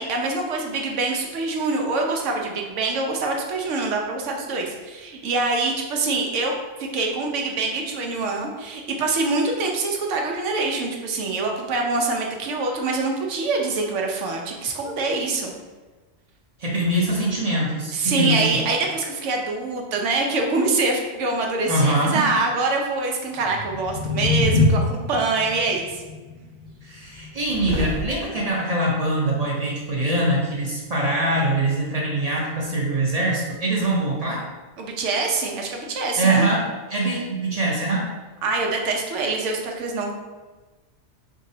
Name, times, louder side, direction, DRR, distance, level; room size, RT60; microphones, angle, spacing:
voice 1, 0.0-6.5 6.8-15.5 17.9-26.0 34.8-36.5 38.4-40.1, right 3 dB, 85° right, 1 dB, 1.0 m, -25 dB
voice 2, 16.6-18.6 21.7-22.3 26.8-34.4 36.2-38.1, right 1 dB, 40° right, -3 dB, 0.6 m, -23 dB
sound 1, 23.3-29.5, left 2 dB, 80° left, 1.7 m, -26 dB
sound 2, 26.7-28.5 29.4-29.5, right 1 dB, 55° right, 1.3 m, -32 dB
4.0 x 3.6 x 2.6 m, 1.3 s
omnidirectional pair, 1.2 m